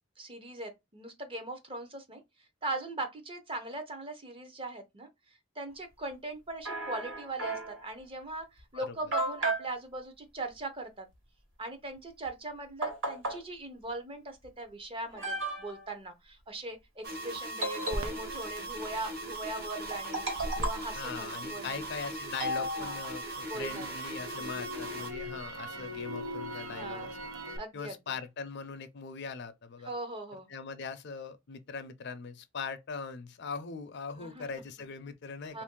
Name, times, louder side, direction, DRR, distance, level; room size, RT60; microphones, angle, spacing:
voice 1, 0.2-2.2 2.6-5.1 5.6-11.1 11.6-21.8 22.8-23.0 23.5-23.9 24.3-24.6 26.7-27.2 27.6-28.0 29.8-30.5 34.1-34.5 35.5-35.6, right 2 dB, 25° right, 0.6 m, -40 dB
sound 1, 6.7-7.9 8.6-8.7 9.1-9.7 12.3-12.4 12.8-13.4 14.4-14.5 15.1-15.9 17.6-18.4 19.9-20.9 22.4-23.3, right 2 dB, 65° right, 1.5 m, -34 dB
sound 2, 17.0-25.1, right 2 dB, 50° right, 0.9 m, -39 dB
Crackle, 17.9-22.0 22.4-27.6, equal, 90° right, 0.7 m, -41 dB
voice 2, 20.9-27.2 27.7-29.9 30.5-35.6, left 5 dB, 55° left, 0.5 m, -41 dB
3.0 x 2.6 x 3.6 m
head